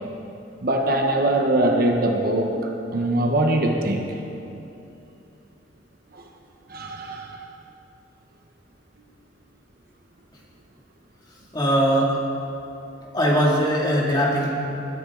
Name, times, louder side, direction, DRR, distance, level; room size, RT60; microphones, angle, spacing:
voice 1, 0.6-2.5 2.9-4.0 6.1-6.2 6.7-7.4, right 1 dB, 50° right, 2 dB, 1.1 m, -22 dB
voice 2, 11.5-12.1 13.1-14.5, equal, 25° left, -4 dB, 2.5 m, -20 dB
21.0 x 10.5 x 3.9 m, 2.8 s
head